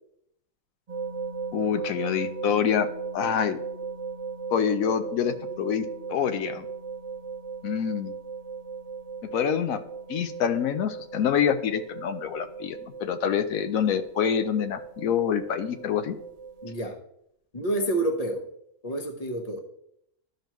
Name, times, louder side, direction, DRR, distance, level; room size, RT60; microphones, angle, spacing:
sound 1, 0.9-16.9, right 5 dB, 55° right, 0.4 m, -37 dB
voice 1, 1.5-2.9 3.1-3.6 4.5-6.7 7.6-8.1 9.2-9.8 10.1-16.2, left 8 dB, 85° left, 9 dB, 1.1 m, -26 dB
voice 2, 16.6-17.0 17.5-18.5 18.8-19.6, right 1 dB, 30° left, 4 dB, 1.1 m, -28 dB
13.0 x 5.2 x 3.1 m, 0.75 s
omnidirectional pair, 1.4 m